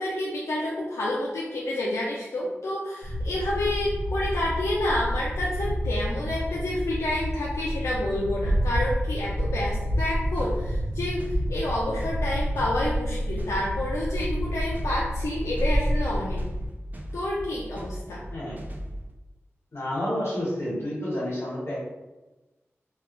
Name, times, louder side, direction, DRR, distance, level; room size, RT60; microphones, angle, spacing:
voice 1, 0.0-16.4 17.1-18.2, left 1 dB, 90° left, -5 dB, 0.3 m, -29 dB
sound 1, 3.0-16.7, equal, 80° right, 1.0 m, -29 dB
sound 2, 10.4-19.1, equal, 35° right, 0.4 m, -39 dB
voice 2, 19.7-21.8, left 1 dB, 60° left, -6 dB, 1.1 m, -29 dB
2.2 x 2.1 x 3.0 m, 1.1 s
wide cardioid pair, 65°, 5 cm